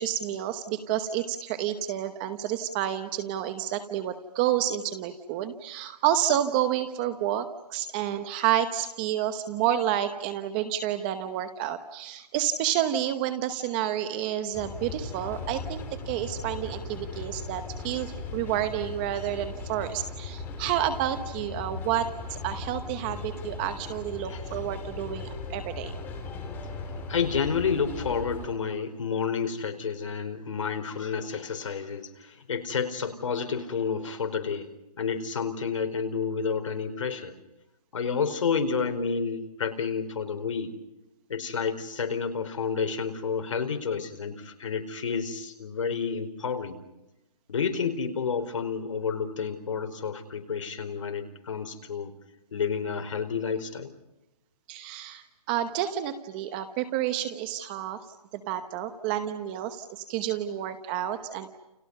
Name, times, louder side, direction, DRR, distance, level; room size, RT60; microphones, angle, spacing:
voice 1, 0.0-25.9 54.7-58.0 58.3-61.5, right 11 dB, 15° right, 10 dB, 1.0 m, -30 dB
sound 1, 14.5-28.5, left 3 dB, 10° left, 3.2 m, -38 dB
voice 2, 27.1-37.3 37.9-40.7 41.3-46.8 47.5-52.1 52.5-53.9, left 6 dB, 55° left, 6 dB, 4.6 m, -30 dB
30.0 x 30.0 x 5.4 m, 0.97 s
hypercardioid pair, 170°, 20 cm